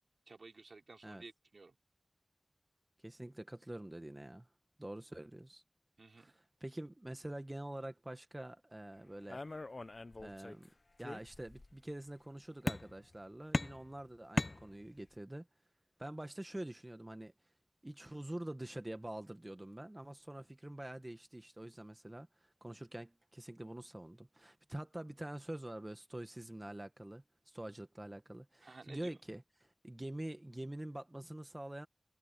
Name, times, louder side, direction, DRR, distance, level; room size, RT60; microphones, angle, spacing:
voice 1, 0.3-1.8 6.0-6.3 28.6-29.1, right 3 dB, 80° right, 3.5 m, -54 dB
voice 2, 3.0-4.5 4.8-5.6 6.2-9.4 10.2-10.7 11.0-15.5 16.0-17.3 17.8-31.9, right 1 dB, 25° right, 1.5 m, -46 dB
sound 1, 9.3-10.7 11.0-11.7 12.7-13.2 13.5-15.1, left 2 dB, 55° left, 0.7 m, -39 dB
wide cardioid pair, 50°, 0 cm